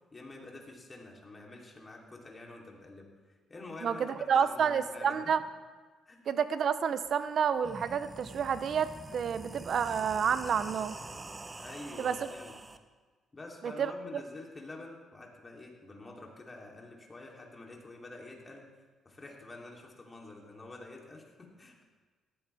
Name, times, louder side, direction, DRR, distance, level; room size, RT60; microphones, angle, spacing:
voice 1, 0.1-3.1 3.5-5.2 6.1-6.2 11.6-12.5 13.3-18.6 19.0-21.8, left 2 dB, 25° left, -1 dB, 3.2 m, -47 dB
voice 2, 3.8-5.4 6.3-11.0 12.0-12.2 13.6-13.9, right 7 dB, 60° right, 13 dB, 0.7 m, -29 dB
sound 1, 7.1-7.2 7.5-12.8, right 2 dB, 25° right, 0.9 m, -46 dB
18.0 x 14.0 x 3.5 m, 1.4 s
cardioid pair, 90°, 0 cm